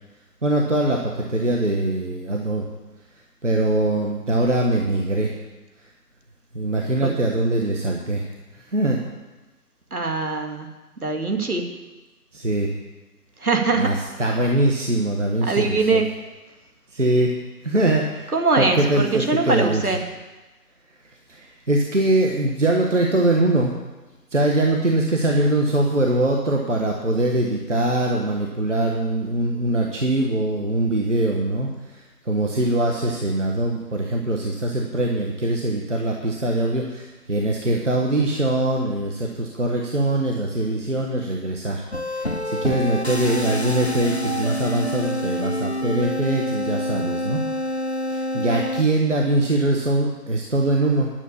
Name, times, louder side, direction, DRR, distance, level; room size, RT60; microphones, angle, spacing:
voice 1, 0.4-2.7 3.4-5.4 6.5-8.3 8.5-9.0 12.3-12.7 13.7-16.0 16.9-17.3 17.6-19.8 21.3-23.8 24.3-47.8 48.1-51.1, right 1 dB, 50° right, 0 dB, 1.5 m, -22 dB
voice 2, 9.9-10.7 11.0-11.7 13.4-13.9 15.4-16.1 18.3-20.0, right 3 dB, 65° right, 4 dB, 2.1 m, -22 dB
sound 1, 41.9-48.8, left 1 dB, 45° left, 0.6 m, -27 dB
10.5 x 7.0 x 8.5 m, 1.2 s
figure-of-eight pair, 180°, 47 cm